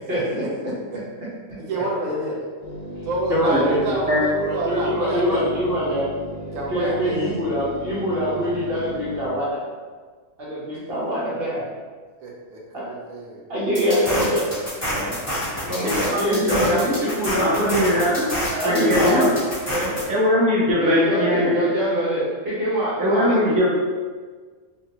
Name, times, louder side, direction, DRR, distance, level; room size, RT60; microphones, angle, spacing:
voice 1, 0.1-0.7 3.3-4.0 4.3-6.1 6.7-9.6 10.4-11.6 12.7-12.9 13.5-14.5 14.9-15.1 15.7-19.4 19.7-20.0 20.8-23.7, equal, 50° right, -7 dB, 1.1 m, -24 dB
voice 2, 1.6-2.4 3.0-5.4 6.5-7.4 12.2-13.4, right 1 dB, 75° right, -2 dB, 1.0 m, -28 dB
sound 1, 2.6-9.3, equal, 60° left, 1.0 m, -36 dB
sound 2, 13.7-20.0, equal, 15° left, 1.0 m, -27 dB
voice 3, 16.3-16.9 17.4-18.2 18.6-19.3 20.1-21.5 23.0-23.7, left 1 dB, 10° right, -7 dB, 0.3 m, -20 dB
3.2 x 2.4 x 2.8 m, 1.5 s
omnidirectional pair, 1.4 m